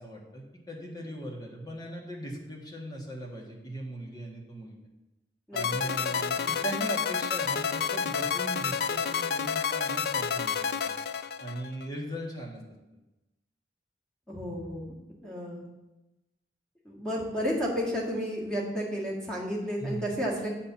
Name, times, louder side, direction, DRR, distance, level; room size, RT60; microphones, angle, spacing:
voice 1, 0.0-4.7 5.5-10.9 11.4-12.6 19.8-20.1, right 1 dB, 20° left, -1 dB, 1.6 m, -39 dB
voice 2, 5.5-6.5 14.3-14.9 15.2-15.6 16.9-20.5, equal, 5° left, -5 dB, 2.0 m, -32 dB
sound 1, 5.6-11.9, left 6 dB, 60° left, 0.3 m, -29 dB
8.6 x 4.3 x 7.2 m, 1.0 s
head